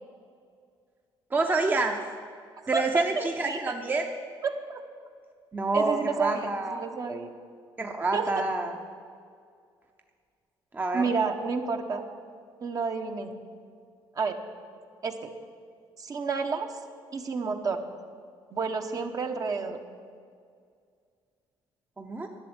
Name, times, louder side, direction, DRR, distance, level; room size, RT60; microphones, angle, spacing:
voice 1, 1.3-2.0 2.7-4.0 5.5-6.9 7.8-8.7 10.7-11.1 22.0-22.3, right 3 dB, 20° right, 3 dB, 0.8 m, -28 dB
voice 2, 2.7-3.6 4.4-4.5 5.7-7.3 8.1-8.3 10.9-12.0 12.6-13.3 14.2-14.4 15.0-15.3 16.0-16.7 17.1-17.8 18.5-19.8, right 4 dB, 40° right, 5 dB, 1.0 m, -30 dB
11.5 x 6.9 x 9.6 m, 2.2 s
cardioid pair, 110°, 9 cm